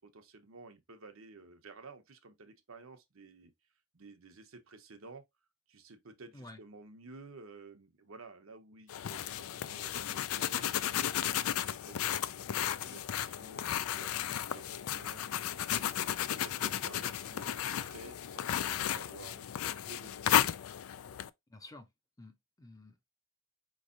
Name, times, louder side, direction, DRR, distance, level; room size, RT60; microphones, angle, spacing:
voice 1, 0.0-3.5 3.9-5.2 5.7-20.6, right 3 dB, 80° right, 0.9 m, -53 dB
sound 1, 8.9-21.3, left 10 dB, 85° left, 0.4 m, -34 dB
voice 2, 21.5-21.9 22.2-23.0, left 2 dB, 15° left, 0.6 m, -51 dB
5.2 x 3.2 x 2.5 m
head